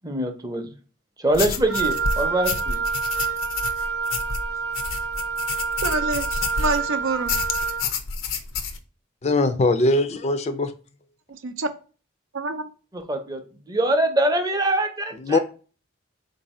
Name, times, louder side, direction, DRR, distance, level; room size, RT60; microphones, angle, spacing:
voice 1, 0.0-0.7 1.2-2.8 12.9-13.4 13.7-15.4, right 1 dB, 20° right, 0.6 m, -23 dB
sound 1, 1.3-6.9 7.3-8.8, left 5 dB, 90° left, 0.6 m, -29 dB
Wind instrument woodwind instrument, 1.7-7.9, right 5 dB, 55° right, 0.7 m, -27 dB
voice 2, 5.8-7.3 11.3-11.7 12.3-12.7, right 3 dB, 85° right, 0.5 m, -27 dB
voice 3, 9.2-10.7 15.2-15.4, left 2 dB, 35° left, 0.4 m, -21 dB
4.1 x 2.6 x 4.1 m
head